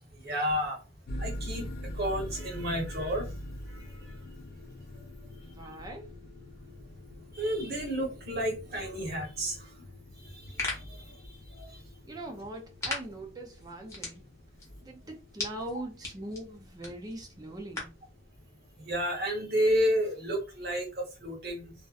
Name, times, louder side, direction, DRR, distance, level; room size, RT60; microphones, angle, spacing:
voice 1, 0.2-0.8 1.2-1.7 2.0-3.3 3.7-3.8 7.3-9.7 10.4-11.1 11.6-11.7 18.8-21.7, equal, 55° right, 1.0 m, -31 dB
sound 1, 1.1-19.6, left 1 dB, 50° left, 0.4 m, -45 dB
voice 2, 5.4-6.2 12.0-14.2 14.8-18.0, right 1 dB, 20° right, 0.4 m, -41 dB
sound 2, 10.2-18.1, left 2 dB, 15° left, 0.8 m, -41 dB
2.6 x 2.1 x 2.4 m
head